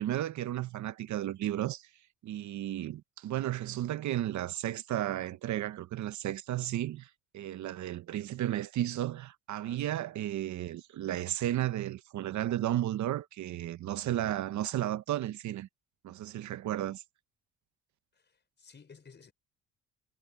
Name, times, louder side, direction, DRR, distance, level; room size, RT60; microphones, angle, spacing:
voice 1, 0.0-1.9 2.2-15.7 16.0-17.0, right 13 dB, 70° right, 0.9 m, -33 dB
voice 2, 9.6-10.0 18.2-19.3, left 5 dB, 35° left, 5.1 m, -56 dB
cardioid pair, 90°, 30 cm